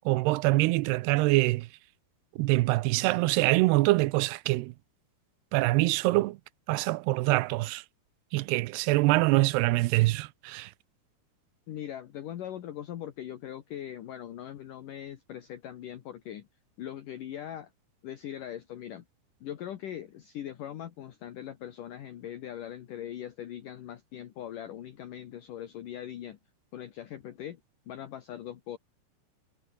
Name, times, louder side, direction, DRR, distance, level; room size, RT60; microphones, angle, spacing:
voice 1, 0.1-1.7 2.4-4.7 5.5-6.4 6.7-7.8 8.3-10.7, right 20 dB, 85° right, 2.7 m, -24 dB
voice 2, 11.7-16.5 16.8-17.7 18.0-19.0 19.4-26.4 26.7-27.6 27.9-28.8, left 11 dB, 60° left, 2.7 m, -41 dB
omnidirectional pair, 4.8 m